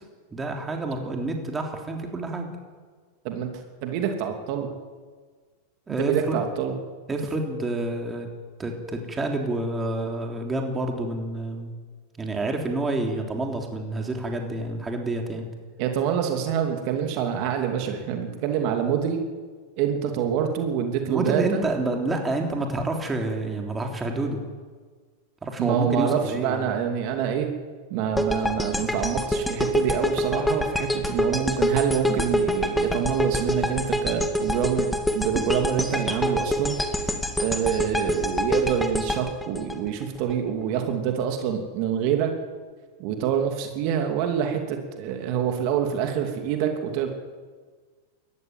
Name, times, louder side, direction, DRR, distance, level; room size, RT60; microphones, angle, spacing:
voice 1, 0.3-2.5 5.9-6.4 7.1-8.3 8.6-11.8 12.2-15.5 21.1-24.4 25.4-26.7, right 2 dB, 15° right, 2 dB, 3.4 m, -28 dB
voice 2, 3.8-4.7 6.0-6.7 15.8-19.2 19.8-21.6 25.6-27.5 27.9-36.8 37.4-42.3 43.0-47.1, right 8 dB, 50° right, 4 dB, 2.9 m, -26 dB
sound 1, 28.2-40.3, equal, 5° left, 2.0 m, -26 dB
19.5 x 14.5 x 9.3 m, 1.5 s
hypercardioid pair, 120°, 0 cm